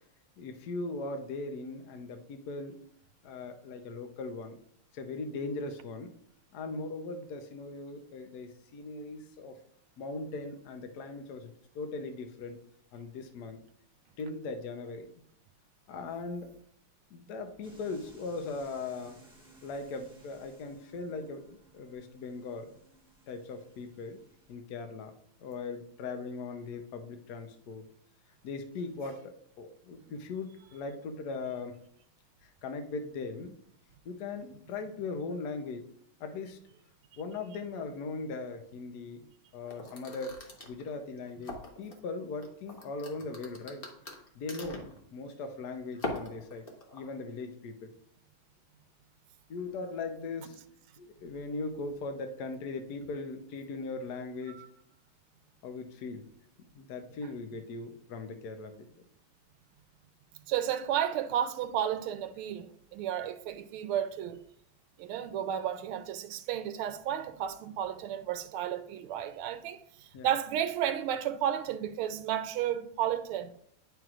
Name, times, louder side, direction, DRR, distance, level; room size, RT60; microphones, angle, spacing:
voice 1, 0.4-2.8 3.2-4.5 4.9-6.1 6.5-9.6 10.0-12.6 12.9-13.6 14.2-15.1 15.9-16.5 17.1-19.2 19.6-22.7 23.3-24.2 24.5-25.1 25.4-27.8 28.4-31.8 32.4-33.6 34.0-35.9 36.2-36.6 37.2-39.2 39.5-40.4 40.7-43.8 44.3-46.7 46.9-47.9 49.5-50.6 51.0-54.6 55.6-56.2 56.7-58.9 70.1-70.3, left 3 dB, 60° left, 1.1 m, -39 dB
sound 1, 17.6-24.6, right 2 dB, 5° right, 1.2 m, -59 dB
sound 2, 39.7-42.0 42.4-45.0 45.9-47.0, left 2 dB, 35° left, 1.0 m, -40 dB
voice 2, 60.5-64.4 65.0-73.5, right 10 dB, 85° right, 1.4 m, -32 dB
9.1 x 6.0 x 2.4 m
omnidirectional pair, 2.4 m